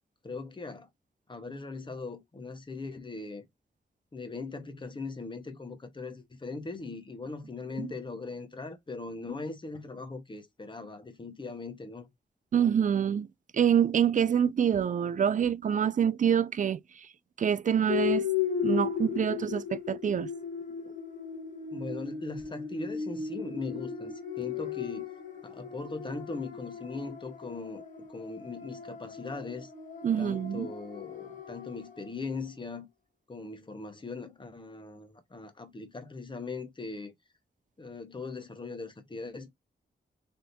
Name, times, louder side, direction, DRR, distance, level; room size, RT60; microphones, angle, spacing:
voice 1, 0.2-0.9 1.3-3.5 4.1-12.1 21.7-25.0 25.4-27.8 28.1-29.7 30.2-32.9 33.3-37.1 37.8-39.5, left 3 dB, 25° left, 0.9 m, -40 dB
voice 2, 12.5-13.3 13.5-16.8 17.4-18.3 18.6-20.3 30.0-30.7, right 8 dB, 45° right, 0.4 m, -26 dB
sound 1, 17.9-32.1, left 8 dB, 40° left, 1.4 m, -36 dB
3.5 x 2.7 x 4.0 m
wide cardioid pair, 95°, 19 cm